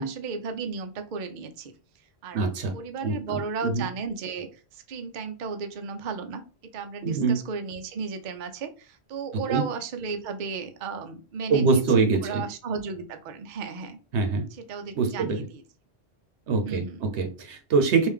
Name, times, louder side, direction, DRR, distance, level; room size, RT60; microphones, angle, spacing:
voice 1, 0.0-1.7 2.2-2.4 2.7-4.5 4.7-6.4 6.7-14.0 14.7-15.6 16.7-17.1, right 5 dB, 55° right, 6 dB, 0.6 m, -34 dB
voice 2, 2.3-2.7 3.0-3.8 7.0-7.4 9.5-9.6 11.5-12.4 14.1-14.4 14.9-15.4 16.5-18.1, right 4 dB, 80° right, 6 dB, 1.0 m, -24 dB
3.3 x 2.6 x 3.5 m, 0.35 s
omnidirectional pair, 1.1 m